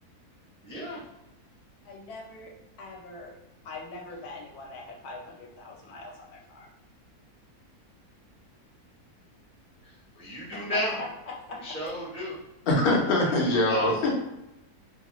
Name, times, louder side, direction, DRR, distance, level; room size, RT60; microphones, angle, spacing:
voice 1, 0.6-1.0 10.2-11.0 11.6-12.4 13.4-13.9, left 1 dB, 5° left, -6 dB, 0.6 m, -33 dB
voice 2, 1.8-3.3 3.6-6.7 10.5-11.8, left 2 dB, 80° left, 0 dB, 1.2 m, -42 dB
voice 3, 12.7-14.1, left 1 dB, 50° left, -1 dB, 0.7 m, -23 dB
2.8 x 2.3 x 2.9 m, 0.94 s
omnidirectional pair, 1.6 m